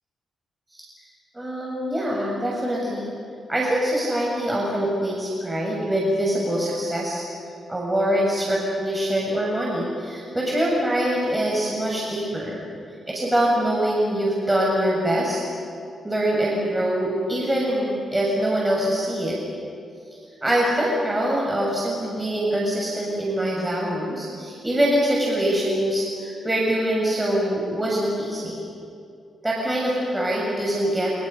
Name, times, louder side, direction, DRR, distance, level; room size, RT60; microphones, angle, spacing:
voice 1, 1.3-3.2 3.5-7.2 7.7-12.6 13.1-15.5 16.0-19.4 20.4-28.6 29.4-31.1, right 1 dB, 20° right, -3 dB, 6.8 m, -24 dB
27.5 x 27.0 x 5.6 m, 2.5 s
hypercardioid pair, 40°, 0 cm